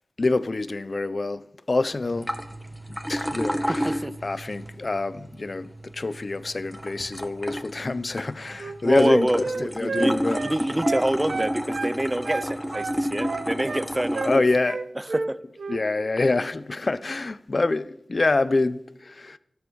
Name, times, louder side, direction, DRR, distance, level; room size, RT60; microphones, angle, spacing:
voice 1, 0.2-2.3 2.9-10.4 14.2-14.8 15.7-19.4, left 3 dB, 55° left, 0.7 m, -26 dB
sound 1, 2.0-14.4, equal, ahead, 1.7 m, -31 dB
Wind instrument woodwind instrument, 8.5-11.9 12.2-13.8 14.1-14.4 14.7-15.3 15.6-15.8, right 3 dB, 80° right, 1.2 m, -30 dB
voice 2, 8.8-14.4 15.0-15.4, right 1 dB, 20° right, 0.7 m, -27 dB
13.5 x 12.5 x 6.3 m
wide cardioid pair, 55°, 0 cm